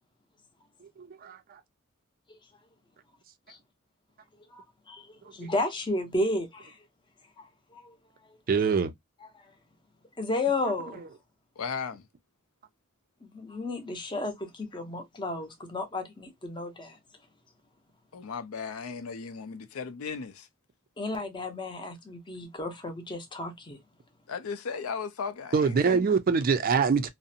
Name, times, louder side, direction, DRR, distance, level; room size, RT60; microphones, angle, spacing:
voice 1, 4.5-6.8 7.4-8.0 8.2-8.4 9.2-9.5 10.2-11.0 13.2-17.0 21.0-23.8, left 2 dB, 20° left, 0.6 m, -33 dB
voice 2, 8.5-8.9 25.5-27.1, right 5 dB, 40° right, 0.3 m, -23 dB
voice 3, 11.6-12.1 18.1-20.5 24.3-26.1, left 5 dB, 80° left, 0.5 m, -36 dB
2.5 x 2.0 x 2.6 m
head